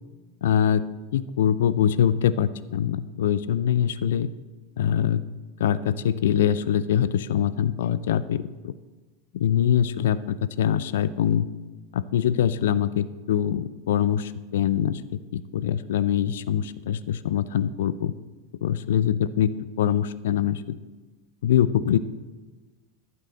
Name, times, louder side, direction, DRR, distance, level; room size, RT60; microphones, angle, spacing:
voice 1, 0.4-0.8 1.1-4.3 4.8-5.2 5.6-8.7 9.3-11.5 11.9-15.0 15.3-18.1 18.6-19.5 19.8-20.8 21.4-22.0, left 9 dB, 65° left, 16 dB, 0.4 m, -23 dB
11.5 x 10.5 x 4.1 m, 1.2 s
figure-of-eight pair, 85°, 0 cm